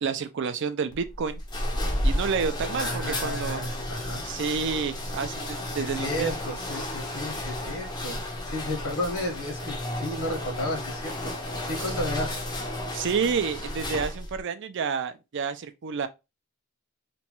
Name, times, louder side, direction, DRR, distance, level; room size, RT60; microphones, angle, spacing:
voice 1, 0.0-1.4 2.0-3.6 4.2-6.3 12.9-16.1, right 5 dB, 55° right, 0.4 m, -29 dB
sound 1, 0.9-14.4, left 1 dB, 20° left, 0.5 m, -32 dB
voice 2, 2.8-4.2 5.8-12.4, left 1 dB, 80° left, 1.4 m, -33 dB
3.0 x 2.2 x 2.9 m
head